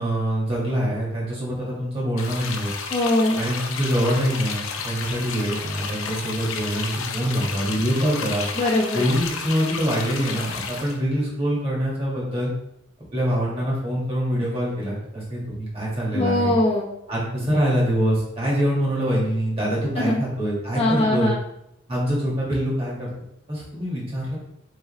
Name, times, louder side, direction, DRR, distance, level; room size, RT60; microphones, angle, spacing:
voice 1, 0.0-2.7 3.4-8.5 8.9-12.5 13.1-16.5 17.1-21.3 21.9-23.1 23.5-24.4, equal, 30° right, -5 dB, 1.8 m, -24 dB
sound 1, 2.2-11.0, left 5 dB, 85° left, 0.6 m, -32 dB
voice 2, 2.9-3.4 8.6-9.1 16.1-16.9 20.0-20.2 20.7-21.4, left 1 dB, 30° left, -5 dB, 0.8 m, -21 dB
4.6 x 3.7 x 3.1 m, 0.80 s
head